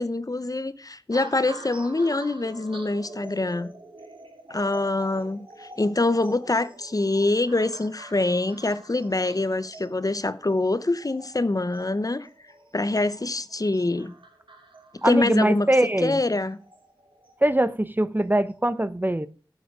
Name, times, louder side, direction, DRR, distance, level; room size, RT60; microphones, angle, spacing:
voice 1, 0.0-3.7 4.5-12.3 12.7-14.1 15.0-15.7 16.0-16.6, left 2 dB, 45° left, 0.8 m, -25 dB
sound 1, 1.1-17.6 18.2-18.5, right 2 dB, 75° right, 2.8 m, -47 dB
voice 2, 15.0-16.2 17.4-19.3, right 1 dB, 20° right, 0.8 m, -22 dB
11.0 x 7.9 x 4.9 m
wide cardioid pair, 45°, 9 cm